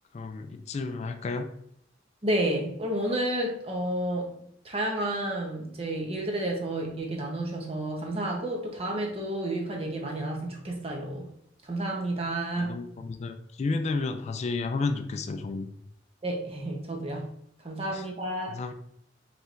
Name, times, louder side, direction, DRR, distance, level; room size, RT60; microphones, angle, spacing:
voice 1, 0.1-1.5 12.6-15.7 17.9-18.0 18.5-18.7, left 3 dB, 35° left, 7 dB, 0.3 m, -32 dB
voice 2, 2.2-4.3 4.6-11.3 11.6-12.8 16.2-17.3 17.6-18.5, right 1 dB, 30° right, 0 dB, 0.8 m, -31 dB
4.4 x 3.3 x 2.5 m, 0.70 s
head